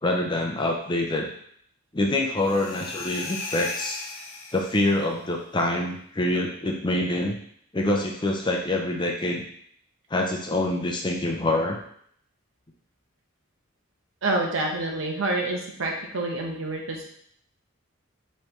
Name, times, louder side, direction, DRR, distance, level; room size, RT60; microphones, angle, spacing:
voice 1, 0.0-1.3 1.9-4.0 4.5-7.4 7.7-9.4 10.1-11.8, left 1 dB, 20° left, 1 dB, 0.6 m, -25 dB
sound 1, 2.4-5.1, left 3 dB, 70° left, 0.8 m, -36 dB
voice 2, 14.2-17.1, right 2 dB, 65° right, 0 dB, 0.9 m, -27 dB
5.3 x 3.2 x 3.1 m, 0.65 s
head